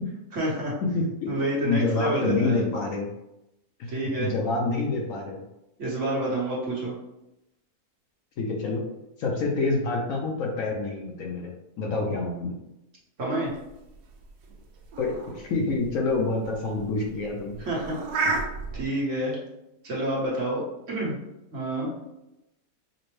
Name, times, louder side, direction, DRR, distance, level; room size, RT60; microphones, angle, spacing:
voice 1, 0.3-0.8 1.3-2.6 3.9-4.3 5.8-6.9 13.2-13.5 17.6-18.4 18.7-19.3 19.8-21.2 21.5-21.9, right 1 dB, 50° right, -5 dB, 1.3 m, -28 dB
voice 2, 0.9-1.3 1.6-3.1 3.8-5.4 8.4-8.8 9.2-11.5 11.8-12.5 15.0-17.6 18.2-18.3, left 3 dB, 65° left, -1 dB, 1.0 m, -27 dB
sound 1, 13.5-18.8, right 4 dB, 80° right, 1.1 m, -33 dB
5.0 x 2.1 x 3.1 m, 0.90 s
omnidirectional pair, 1.7 m